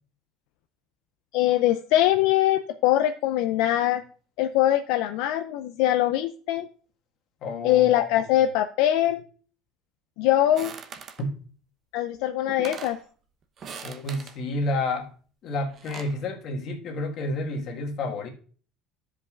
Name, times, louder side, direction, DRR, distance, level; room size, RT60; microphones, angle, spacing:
voice 1, 1.3-4.0 4.4-6.7 7.6-9.2 10.2-10.7 11.9-13.0, left 13 dB, 75° left, 0.5 m, -22 dB
voice 2, 7.4-8.3 11.2-11.4 13.8-15.1 15.4-18.3, left 2 dB, 45° left, 1.7 m, -30 dB
sound 1, 10.6-11.3 12.2-12.3 12.5-13.0 13.6-14.4 15.5-16.2, right 6 dB, 40° right, 0.8 m, -41 dB
13.0 x 5.2 x 2.5 m
cardioid pair, 145°, 0 cm